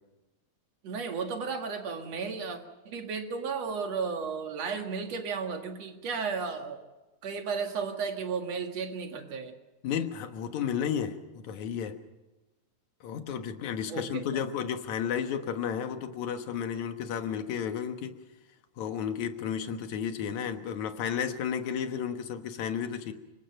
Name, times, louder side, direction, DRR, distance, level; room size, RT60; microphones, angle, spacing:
voice 1, 0.8-2.6 2.9-6.8 7.2-9.5 13.9-14.0 14.3-14.5, right 5 dB, 60° right, 4 dB, 3.0 m, -34 dB
voice 2, 9.8-12.0 13.0-18.1 18.8-23.1, left 8 dB, 70° left, 7 dB, 2.7 m, -32 dB
26.0 x 23.0 x 5.8 m, 1.1 s
omnidirectional pair, 3.5 m